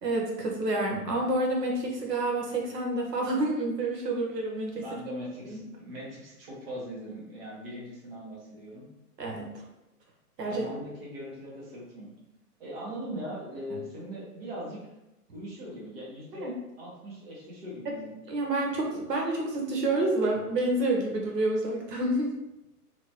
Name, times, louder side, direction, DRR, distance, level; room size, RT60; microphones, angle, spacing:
voice 1, 0.0-4.8 5.4-5.6 9.2-9.6 10.4-10.6 13.7-13.8 16.3-16.5 17.8-17.9 18.3-22.3, right 2 dB, 90° right, 0 dB, 1.0 m, -28 dB
voice 2, 4.7-8.9 10.5-12.1 12.6-14.8 15.3-16.5 16.8-18.2, equal, 40° right, -5 dB, 0.9 m, -40 dB
2.9 x 2.3 x 2.9 m, 0.93 s
hypercardioid pair, 165°, 47 cm